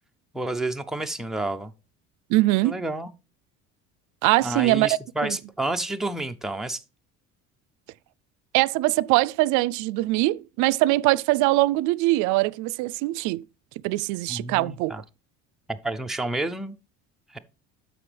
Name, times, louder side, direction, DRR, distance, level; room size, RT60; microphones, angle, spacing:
voice 1, 0.3-1.7 2.6-3.1 4.4-6.8 14.3-15.0 15.7-16.7 17.3-17.4, right 2 dB, ahead, 0.4 m, -30 dB
voice 2, 2.3-2.8 4.2-4.9 5.2-5.4 8.5-13.5 13.8-14.9, right 19 dB, 75° right, 0.4 m, -22 dB
13.0 x 5.0 x 3.3 m
cardioid pair, 155°, 30 cm